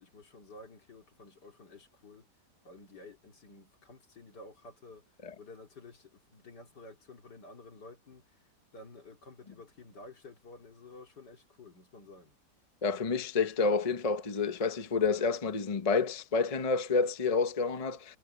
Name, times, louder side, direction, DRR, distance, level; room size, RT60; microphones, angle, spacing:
voice 1, 0.0-2.3 2.6-5.0 5.4-8.4 8.7-12.4, left 2 dB, 70° left, 3.4 m, -52 dB
voice 2, 12.8-18.2, left 4 dB, 25° left, 0.9 m, -29 dB
omnidirectional pair, 1.9 m